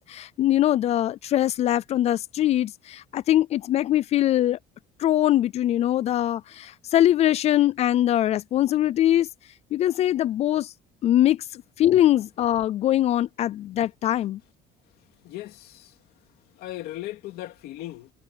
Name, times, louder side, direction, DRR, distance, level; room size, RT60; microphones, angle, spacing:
voice 1, 0.1-4.6 5.0-9.3 9.7-10.7 11.0-14.4, left 12 dB, 40° left, 0.4 m, -22 dB
voice 2, 15.2-15.9 16.5-18.1, left 15 dB, 70° left, 2.7 m, -37 dB
cardioid pair, 175°, 17 cm